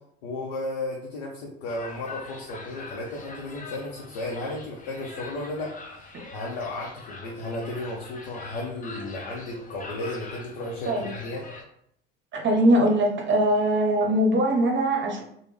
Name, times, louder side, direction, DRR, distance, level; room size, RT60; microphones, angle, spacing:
voice 1, 0.2-5.7 6.3-11.4, left 2 dB, 80° left, -2 dB, 0.7 m, -34 dB
sound 1, 1.7-11.6, left 3 dB, 30° left, 0.6 m, -43 dB
voice 2, 12.3-15.2, right 1 dB, 40° right, 1 dB, 0.8 m, -21 dB
3.3 x 2.2 x 3.2 m, 0.70 s
hypercardioid pair, 65°, 29 cm